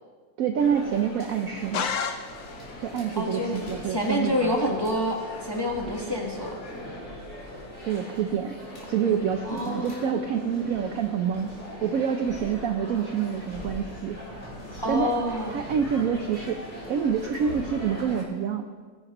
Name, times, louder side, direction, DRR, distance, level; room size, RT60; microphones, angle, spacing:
voice 1, 0.4-1.9 2.8-4.6 7.8-8.5 8.8-11.5 11.8-14.2 14.9-15.1 15.5-18.7, right 7 dB, 80° right, 6 dB, 0.7 m, -27 dB
sound 1, 0.6-18.2, left 1 dB, 35° left, 3.2 m, -40 dB
sound 2, 1.7-2.8, left 6 dB, 75° left, 0.7 m, -30 dB
voice 2, 3.1-3.6 3.8-6.5 9.4-10.3 14.8-15.6, left 1 dB, 15° left, 0 dB, 0.9 m, -28 dB
18.0 x 11.0 x 3.0 m, 1.5 s
omnidirectional pair, 2.1 m